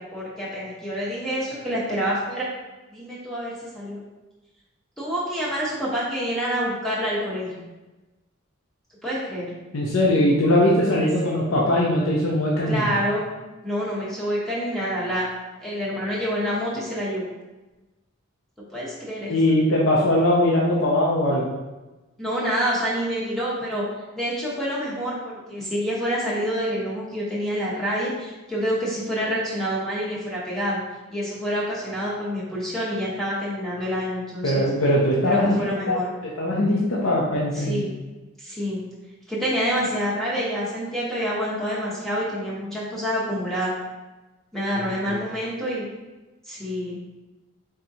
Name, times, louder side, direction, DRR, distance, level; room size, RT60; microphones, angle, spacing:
voice 1, 0.0-2.5 2.9-4.0 5.0-7.6 9.0-9.5 11.0-11.3 12.7-13.3 13.6-15.3 15.6-17.3 18.7-19.3 22.2-23.8 24.2-30.8 31.1-34.6 35.3-36.1 37.5-37.9 38.4-38.9 39.3-43.7 44.5-45.9 46.4-47.0, equal, ahead, -8 dB, 0.9 m, -27 dB
voice 2, 9.7-12.9 19.3-21.5 34.4-36.0 36.4-37.8 45.1-45.2, left 1 dB, 80° left, -4 dB, 0.6 m, -21 dB
4.3 x 3.6 x 2.7 m, 1.1 s
head